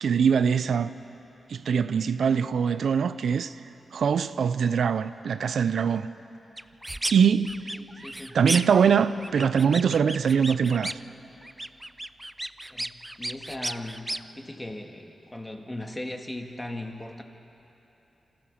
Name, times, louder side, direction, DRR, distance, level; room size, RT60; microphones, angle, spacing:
voice 1, 0.0-0.9 1.5-3.5 3.9-6.1 7.1-7.6 8.3-11.0, right 7 dB, 80° right, 0.5 m, -23 dB
sound 1, 6.6-7.2 7.4-8.9 9.2-11.1 11.4-14.2, right 1 dB, 15° right, 0.5 m, -34 dB
voice 2, 7.7-8.4 12.7-17.2, left 1 dB, 15° left, 1.8 m, -38 dB
26.0 x 14.5 x 7.1 m
cardioid pair, 70°, 0 cm